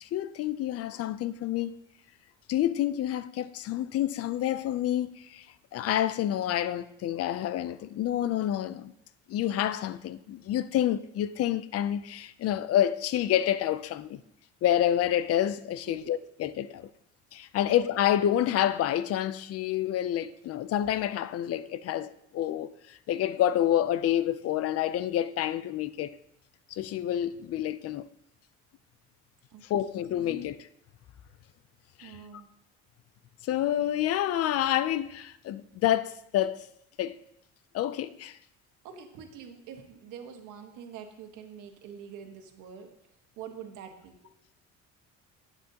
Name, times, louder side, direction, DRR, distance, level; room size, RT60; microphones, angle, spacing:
voice 1, 0.0-1.8 2.5-5.5 5.7-8.9 9.3-14.2 14.6-16.9 17.3-26.2 26.7-28.1 29.7-30.7 32.0-32.2 33.4-36.7 37.0-37.2 37.7-38.4, left 11 dB, 55° left, 0.5 m, -28 dB
voice 2, 30.0-30.5 32.0-32.5 38.8-42.9 43.4-44.1, right 7 dB, 90° right, 1.5 m, -45 dB
11.5 x 8.9 x 2.9 m
cardioid pair, 145°, 30 cm